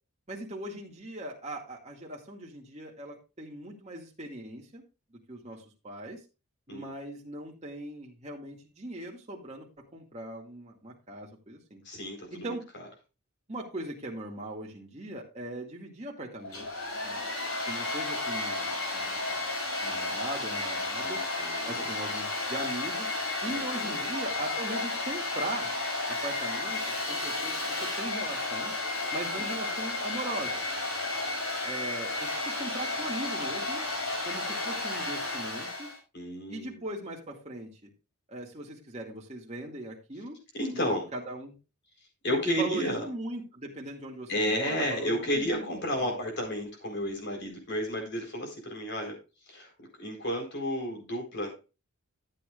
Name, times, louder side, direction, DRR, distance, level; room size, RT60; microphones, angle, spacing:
voice 1, 0.3-4.8 5.1-6.2 6.7-11.8 12.3-12.7 13.5-16.7 17.0-17.3 17.7-19.5 19.8-21.2 21.6-23.1 23.4-25.7 26.1-28.7 29.1-30.6 31.6-33.9 34.3-35.9 36.5-37.9 38.3-40.4 40.7-41.5 42.6-45.7 46.0-46.2, right 1 dB, 30° right, -2 dB, 2.2 m, -40 dB
voice 2, 11.8-12.5 21.0-21.9 23.4-24.1 36.1-36.8 40.5-41.1 42.2-43.0 44.3-49.2 49.5-51.5, equal, 55° left, 2 dB, 4.4 m, -32 dB
Domestic sounds home sounds, 16.4-36.0, left 2 dB, 75° left, 6.3 m, -32 dB
13.0 x 8.8 x 2.5 m, 0.30 s
head